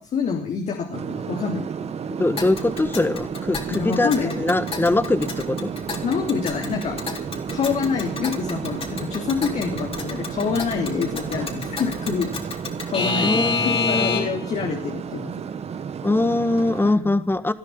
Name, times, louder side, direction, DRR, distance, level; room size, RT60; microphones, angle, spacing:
voice 1, 0.0-1.7 3.8-4.4 6.0-7.0 7.5-12.3 12.8-15.3 16.8-17.1, left 6 dB, 65° left, 2 dB, 3.3 m, -26 dB
sound 1, 0.9-16.9, right 7 dB, 55° right, 1.5 m, -32 dB
voice 2, 2.1-5.7 13.2-14.3 16.0-17.5, left 2 dB, 15° left, 13 dB, 1.6 m, -22 dB
Alarm / Clock, 2.4-14.5, left 4 dB, 50° left, 4.1 m, -30 dB
19.0 x 12.0 x 5.7 m, 0.41 s
supercardioid pair, 65°, 13 cm